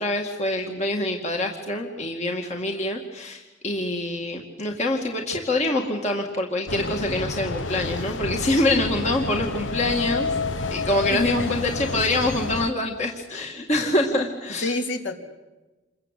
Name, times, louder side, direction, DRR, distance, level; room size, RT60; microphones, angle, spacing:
voice 1, 0.0-10.3 10.7-14.7, left 1 dB, 35° left, 1 dB, 2.1 m, -25 dB
sound 1, 6.7-12.7, left 3 dB, 90° left, 1.1 m, -29 dB
voice 2, 11.1-11.5 14.6-15.2, left 1 dB, 65° left, 3 dB, 3.4 m, -28 dB
28.5 x 23.0 x 8.3 m, 1.2 s
head